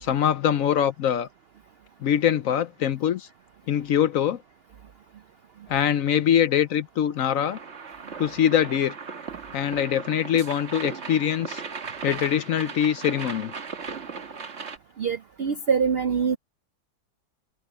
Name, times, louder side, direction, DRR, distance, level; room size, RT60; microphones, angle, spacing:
voice 1, 0.0-1.3 2.0-3.3 3.7-4.4 5.7-7.6 8.2-8.9 9.5-11.6 12.0-13.5, left 9 dB, 65° left, 0.9 m, -23 dB
sound 1, 7.4-14.8, right 5 dB, 45° right, 1.6 m, -37 dB
voice 2, 15.0-16.4, right 6 dB, 65° right, 0.6 m, -24 dB
omnidirectional pair, 1.7 m